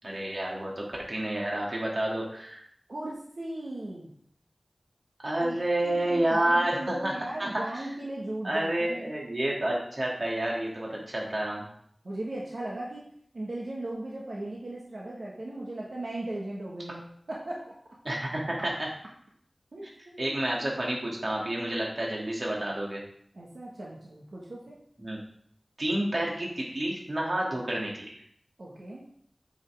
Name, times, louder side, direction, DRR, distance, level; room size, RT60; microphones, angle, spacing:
voice 1, 0.0-2.6 5.2-7.1 7.4-7.9 8.4-11.7 18.0-18.9 20.2-23.0 25.0-25.2 25.8-28.2, right 1 dB, 55° right, -3 dB, 2.4 m, -29 dB
voice 2, 2.9-4.1 5.4-5.6 5.8-9.1 12.0-17.6 19.7-20.4 23.3-24.8 28.6-29.0, right 1 dB, 80° right, -5 dB, 1.5 m, -37 dB
8.4 x 5.6 x 3.6 m, 0.66 s
wide cardioid pair, 50°, 0 cm